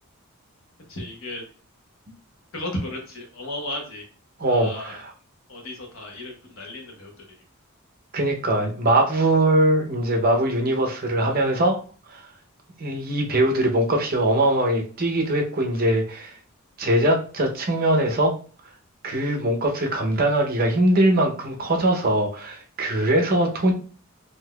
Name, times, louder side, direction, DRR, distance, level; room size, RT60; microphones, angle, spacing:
voice 1, 0.9-1.4 2.5-4.1 4.5-5.0 5.5-7.4, left 1 dB, 65° left, 1 dB, 1.0 m, -34 dB
voice 2, 4.4-5.1 8.1-11.8 12.1-12.3 12.8-16.3 16.8-18.4 19.0-23.7, right 1 dB, 45° right, 2 dB, 0.6 m, -21 dB
3.8 x 2.7 x 2.2 m, 0.39 s
head